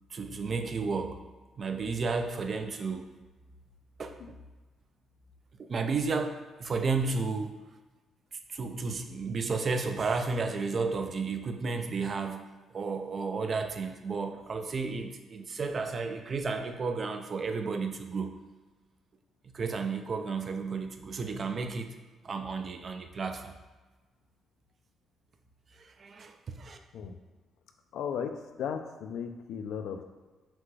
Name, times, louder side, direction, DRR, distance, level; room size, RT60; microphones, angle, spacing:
voice 1, 0.1-1.2 1.6-3.1 4.0-4.4 5.6-6.3 6.6-7.5 8.5-18.4 19.5-21.9 22.2-23.6 25.8-26.8, right 4 dB, 45° right, 6 dB, 0.4 m, -32 dB
voice 2, 27.9-30.0, left 7 dB, 75° left, 6 dB, 0.4 m, -36 dB
6.0 x 2.3 x 3.3 m, 1.2 s
cardioid pair, 90°, 0 cm